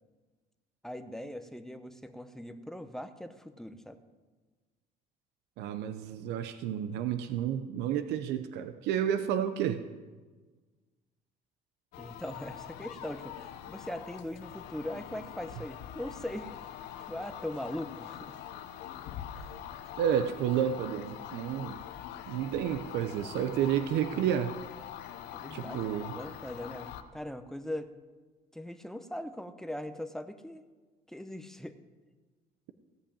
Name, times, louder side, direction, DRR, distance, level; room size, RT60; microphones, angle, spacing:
voice 1, 0.8-4.0 12.0-16.5 17.1-18.3 19.4-19.5 24.1-24.3 25.3-27.9 28.5-30.6 31.1-31.8, left 1 dB, 5° left, 9 dB, 0.9 m, -40 dB
voice 2, 5.6-9.8 20.0-21.8 22.3-24.5 25.5-26.1, right 9 dB, 90° right, 10 dB, 0.7 m, -30 dB
sound 1, 11.9-27.0, left 10 dB, 90° left, 0.9 m, -44 dB
16.5 x 5.7 x 8.7 m, 1.3 s
cardioid pair, 110°, 17 cm